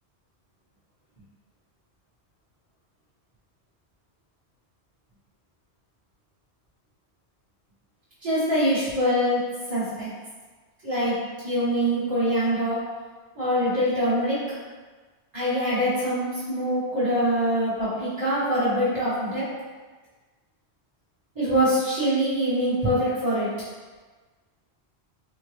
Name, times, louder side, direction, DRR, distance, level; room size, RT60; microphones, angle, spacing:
voice 1, 8.2-10.1 10.8-12.8 13.3-14.4 15.3-19.5 21.3-23.5, equal, 20° right, -12 dB, 1.0 m, -24 dB
3.6 x 2.1 x 3.3 m, 1.4 s
omnidirectional pair, 1.1 m